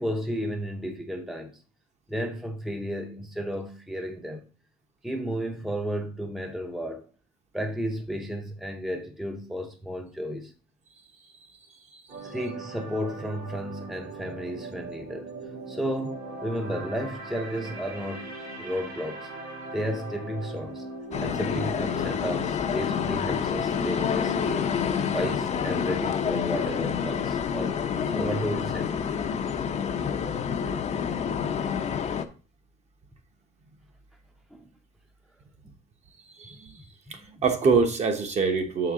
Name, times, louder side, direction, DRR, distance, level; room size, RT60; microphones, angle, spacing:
voice 1, 0.0-1.5 2.1-4.4 5.0-7.0 7.5-10.5 12.2-15.4 15.7-19.3 19.7-20.8 21.2-24.8 25.1-29.1 34.5-34.7 35.6-35.7 36.5-37.4, equal, ahead, 0.7 m, -33 dB
sound 1, 12.1-26.2 26.5-26.8, right 3 dB, 85° right, 2.6 m, -41 dB
sound 2, 21.1-32.2, left 7 dB, 40° left, 0.6 m, -28 dB
voice 2, 37.1-38.9, right 4 dB, 40° right, 1.1 m, -24 dB
6.5 x 4.7 x 3.7 m
cardioid pair, 110°, 17 cm